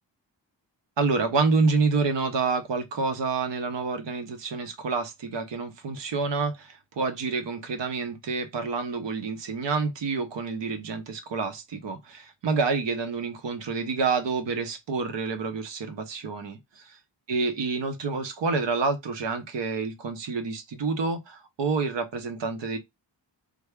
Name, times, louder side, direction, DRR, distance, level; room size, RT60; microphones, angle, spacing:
voice 1, 1.0-17.0 17.3-22.8, right 4 dB, 75° right, 0.9 m, -28 dB
3.4 x 2.1 x 3.5 m
wide cardioid pair, 90°, 44 cm